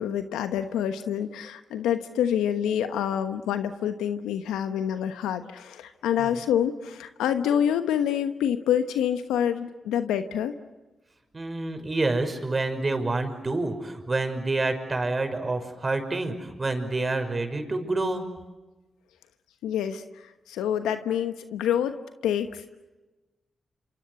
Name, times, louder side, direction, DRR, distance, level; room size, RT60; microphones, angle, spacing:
voice 1, 0.0-10.5 19.6-22.0 22.2-22.6, left 9 dB, 85° left, 10 dB, 1.1 m, -27 dB
voice 2, 11.3-18.3, right 2 dB, 40° right, 7 dB, 5.9 m, -28 dB
27.0 x 26.5 x 8.2 m, 1.1 s
supercardioid pair, 40°, 0 cm